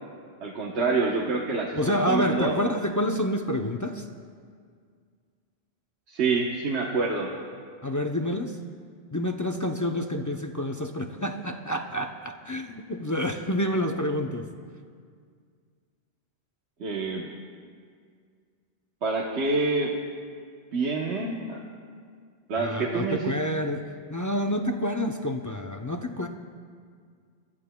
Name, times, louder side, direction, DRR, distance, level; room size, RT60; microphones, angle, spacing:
voice 1, 0.4-2.6 6.1-7.3 16.8-17.3 19.0-19.9 20.7-21.6 22.5-23.3, right 3 dB, 85° right, -2 dB, 1.3 m, -27 dB
voice 2, 1.7-4.0 7.8-8.6 9.1-14.5 22.6-26.3, equal, 25° left, 3 dB, 0.4 m, -28 dB
26.0 x 13.5 x 2.2 m, 2.1 s
omnidirectional pair, 1.1 m